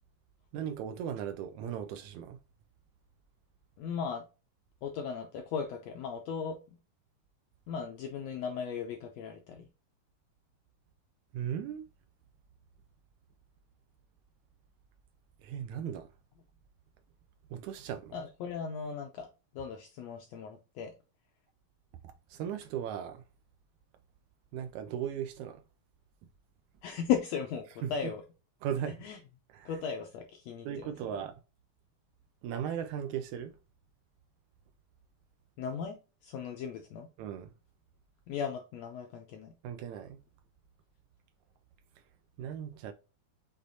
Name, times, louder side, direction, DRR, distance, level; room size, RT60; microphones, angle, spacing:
voice 1, 0.5-2.4 11.3-11.9 15.4-16.1 17.5-18.2 22.0-23.2 24.5-25.6 27.8-28.1 28.6-29.0 29.5-29.7 30.6-31.4 32.4-33.5 37.2-37.5 39.6-40.2 42.4-42.9, right 9 dB, 80° right, 1.8 m, -37 dB
voice 2, 3.8-4.2 4.8-6.6 7.7-9.7 18.1-19.3 19.5-20.9 26.8-28.2 29.0-29.2 29.6-30.9 35.6-36.0 36.2-37.1 38.3-39.5, left 7 dB, 80° left, 1.5 m, -36 dB
6.6 x 3.1 x 2.6 m
omnidirectional pair, 3.7 m